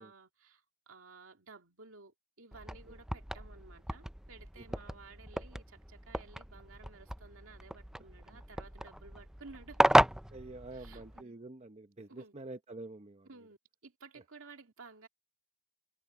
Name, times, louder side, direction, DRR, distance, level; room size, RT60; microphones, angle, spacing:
voice 1, 0.0-9.8 10.7-11.4 12.1-12.3 13.2-15.1, right 4 dB, 75° right, 2.6 m, -55 dB
sound 1, 2.5-11.2, right 1 dB, 5° right, 0.4 m, -33 dB
voice 2, 10.3-13.3, right 2 dB, 30° right, 0.9 m, -47 dB
head